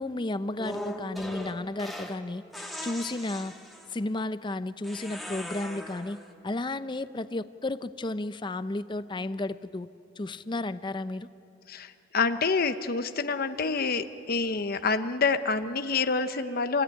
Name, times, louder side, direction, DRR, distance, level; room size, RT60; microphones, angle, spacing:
voice 1, 0.0-2.4 2.8-3.5 3.9-9.9 10.2-11.3, left 2 dB, 25° left, 13 dB, 0.6 m, -33 dB
sound 1, 0.6-2.2 2.5-4.0 4.8-6.2, left 1 dB, ahead, 1.9 m, -39 dB
voice 2, 11.7-16.8, left 4 dB, 50° left, 9 dB, 0.9 m, -27 dB
27.0 x 17.0 x 9.9 m, 2.7 s
head